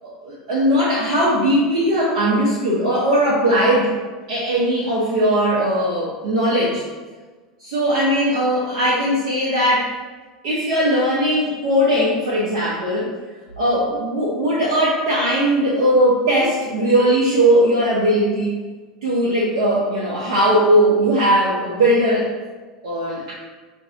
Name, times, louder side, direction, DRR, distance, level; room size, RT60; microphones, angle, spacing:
voice 1, 0.0-3.9 4.3-6.8 7.6-9.9 10.4-13.1 13.6-18.5 19.0-22.3 22.8-23.3, equal, 60° right, -7 dB, 0.8 m, -19 dB
5.0 x 2.6 x 2.3 m, 1.3 s
figure-of-eight pair, 80°, 4 cm